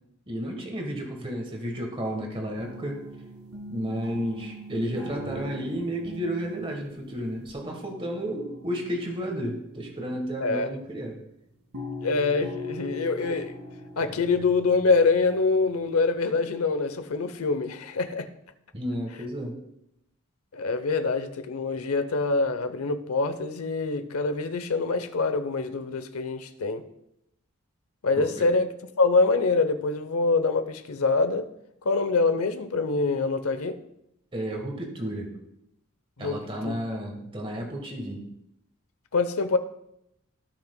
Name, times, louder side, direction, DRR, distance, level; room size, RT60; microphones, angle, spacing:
voice 1, 0.3-3.0 3.7-11.2 18.7-19.5 28.1-28.5 34.3-35.4 36.2-38.2, equal, 25° right, 2 dB, 1.3 m, -32 dB
sound 1, 2.6-10.9 11.7-16.2, left 1 dB, 80° right, 1.6 m, -42 dB
voice 2, 12.0-13.6 14.0-18.3 20.5-26.8 28.0-28.7 29.0-31.5 31.8-33.8 36.2-36.7 39.1-39.6, left 3 dB, 85° left, 10 dB, 0.8 m, -25 dB
16.5 x 5.9 x 2.3 m, 0.81 s
head